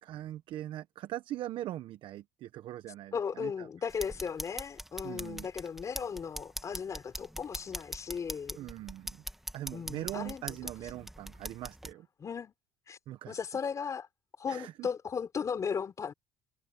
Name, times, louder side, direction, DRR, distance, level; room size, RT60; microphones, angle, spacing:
voice 1, 0.0-3.7 5.0-5.5 8.5-9.2 9.5-12.1 13.1-13.4 14.5-14.9, right 13 dB, 60° right, 1.1 m, -41 dB
voice 2, 3.1-8.6 9.7-10.6 12.2-12.5 12.9-13.0 13.3-14.1 14.4-16.1, left 6 dB, 35° left, 4.2 m, -36 dB
sound 1, 3.9-11.9, right 1 dB, 5° right, 1.6 m, -43 dB
supercardioid pair, 105°, 9 cm